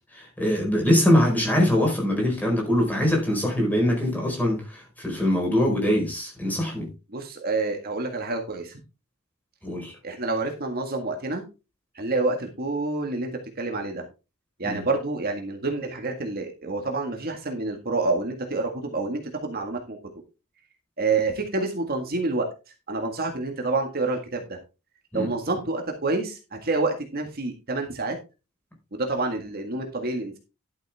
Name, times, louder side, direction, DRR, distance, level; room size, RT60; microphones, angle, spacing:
voice 1, 0.1-6.9 9.6-9.9 14.6-14.8 25.1-25.3, left 1 dB, 10° left, 4.6 m, -23 dB
voice 2, 7.1-8.8 10.0-11.4 12.0-13.3 13.6-14.0 14.6-20.0 21.0-22.5 22.9-24.6 25.1-28.2 28.9-30.4, right 3 dB, 45° right, 1.8 m, -28 dB
12.0 x 7.8 x 3.5 m
head